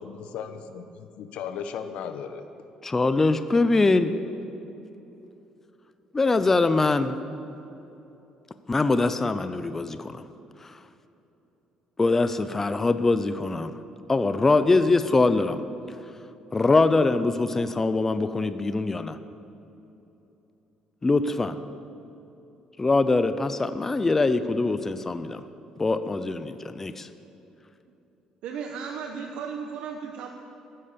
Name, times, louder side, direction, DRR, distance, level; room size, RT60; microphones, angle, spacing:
voice 1, 0.0-2.5, left 7 dB, 75° left, 8 dB, 1.1 m, -36 dB
voice 2, 2.8-4.1 6.1-7.2 8.7-10.2 10.6-10.7 12.0-13.7 14.1-15.6 16.5-19.2 21.0-21.6 22.8-25.4 25.8-27.1, left 3 dB, 15° left, 11 dB, 0.6 m, -23 dB
voice 3, 28.4-30.3, right 6 dB, 75° right, 3 dB, 1.1 m, -35 dB
14.5 x 11.5 x 6.9 m, 3.0 s
cardioid pair, 140°, 2 cm